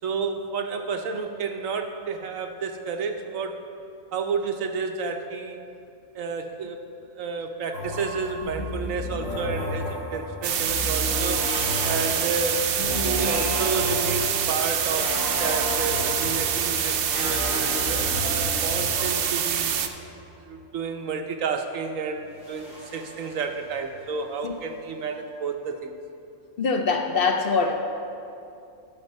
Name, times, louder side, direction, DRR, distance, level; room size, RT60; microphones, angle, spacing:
voice 1, 0.0-3.6 4.1-5.6 6.1-6.8 7.2-11.5 11.8-12.7 13.0-17.5 17.9-19.8 20.4-26.0, right 5 dB, 90° right, 5 dB, 1.2 m, -31 dB
sound 1, 7.7-20.3 22.3-24.0, left 1 dB, 80° left, 2.1 m, -32 dB
sound 2, 10.4-19.9, right 8 dB, 60° right, 0.6 m, -26 dB
voice 2, 26.6-27.7, left 4 dB, 55° left, 4 dB, 0.8 m, -23 dB
12.0 x 5.7 x 5.4 m, 2.6 s
omnidirectional pair, 1.3 m